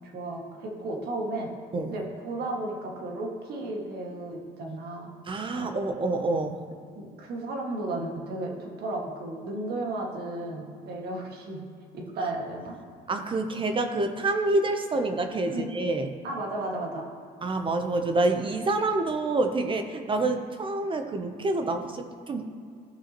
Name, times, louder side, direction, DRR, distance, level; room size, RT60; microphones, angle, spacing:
voice 1, 0.1-1.5 1.9-5.1 5.5-5.7 7.0-11.7 11.9-12.8 15.5-15.6 16.2-17.0 20.2-20.3, right 2 dB, 70° right, -1 dB, 1.8 m, -34 dB
voice 2, 5.3-6.6 13.1-16.1 17.4-22.5, right 2 dB, 30° right, 6 dB, 0.7 m, -27 dB
15.0 x 5.5 x 2.9 m, 2.3 s
cardioid pair, 110°, 17 cm